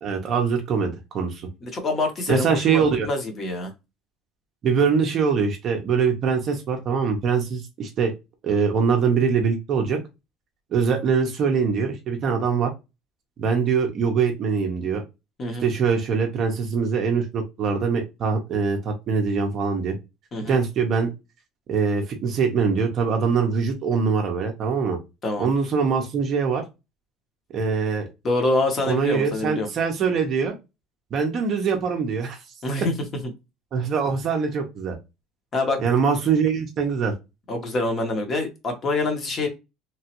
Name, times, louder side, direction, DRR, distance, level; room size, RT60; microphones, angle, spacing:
voice 1, 0.0-1.5 2.3-3.1 4.6-8.1 8.4-10.0 10.7-12.7 13.4-15.0 15.6-20.0 20.5-21.1 21.7-25.0 25.4-26.6 27.5-28.1 28.9-30.6 31.1-32.4 33.7-35.0 35.8-37.1, right 5 dB, 35° right, 3 dB, 0.6 m, -23 dB
voice 2, 1.6-3.7 15.4-15.7 20.3-20.6 25.2-25.5 28.2-29.7 32.6-32.9 35.5-35.8 37.5-39.5, left 2 dB, 25° left, 5 dB, 0.8 m, -25 dB
2.9 x 2.2 x 2.9 m, 0.25 s
cardioid pair, 170°, 0 cm